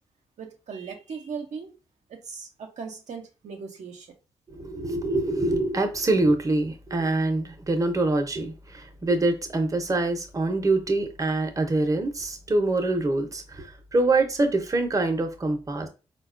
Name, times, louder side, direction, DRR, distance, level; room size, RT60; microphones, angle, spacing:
voice 1, 0.4-1.7 2.1-4.1, right 5 dB, 65° right, 2 dB, 0.6 m, -38 dB
voice 2, 4.5-15.9, right 2 dB, 25° right, 5 dB, 0.7 m, -25 dB
3.9 x 2.2 x 2.4 m, 0.32 s
supercardioid pair, 50°, 13 cm